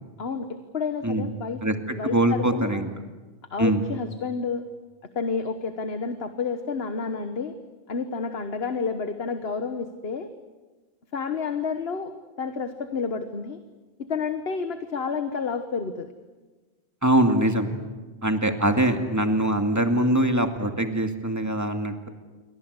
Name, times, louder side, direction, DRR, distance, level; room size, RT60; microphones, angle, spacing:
voice 1, 0.2-1.6 2.0-2.8 3.5-4.6 5.1-7.5 7.9-10.3 11.1-12.1 12.4-13.6 14.0-16.1, left 5 dB, 70° left, 9 dB, 1.5 m, -30 dB
voice 2, 2.1-2.9 3.6-3.8 17.0-17.7 18.2-22.1, right 1 dB, 15° right, 6 dB, 2.2 m, -23 dB
28.5 x 24.5 x 8.2 m, 1.3 s
omnidirectional pair, 1.1 m